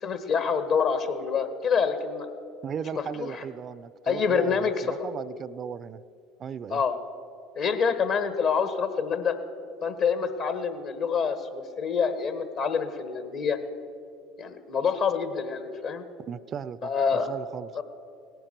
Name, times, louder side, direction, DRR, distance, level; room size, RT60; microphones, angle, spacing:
voice 1, 0.0-2.3 2.9-3.4 4.0-4.9 6.7-7.0 7.6-9.3 9.8-13.6 14.4-16.0 16.8-17.3 17.7-17.8, left 6 dB, 60° left, 10 dB, 1.2 m, -27 dB
voice 2, 2.6-4.6 4.8-6.0 6.4-6.8 16.3-16.9 17.3-17.8, right 8 dB, 40° right, 17 dB, 0.4 m, -36 dB
17.5 x 10.5 x 6.7 m, 2.5 s
hypercardioid pair, 80°, 0 cm